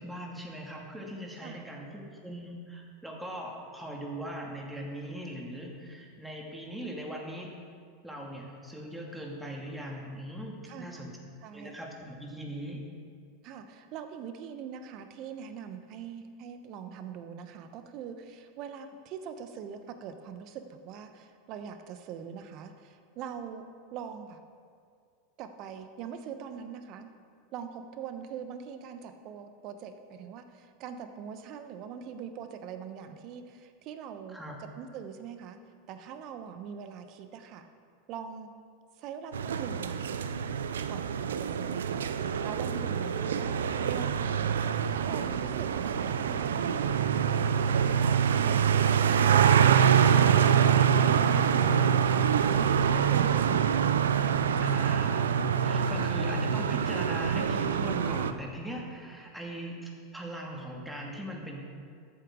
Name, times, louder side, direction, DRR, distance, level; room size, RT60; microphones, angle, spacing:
voice 1, 0.0-7.5 8.0-11.1 11.5-12.8 34.3-34.6 54.6-55.3 55.6-61.6, equal, 5° right, -1 dB, 2.2 m, -40 dB
voice 2, 10.7-11.1 11.4-11.8 13.4-23.6 23.9-24.4 25.4-27.1 27.5-34.4 34.7-35.6 35.9-37.7 38.1-38.5 39.0-40.3 40.9-47.6 48.0-49.1 51.0-53.7 54.3-55.1, right 7 dB, 50° right, 8 dB, 1.0 m, -43 dB
sound 1, 39.3-58.3, right 8 dB, 85° right, 0.5 m, -25 dB
13.5 x 8.1 x 3.8 m, 2.2 s
hypercardioid pair, 95°, 0 cm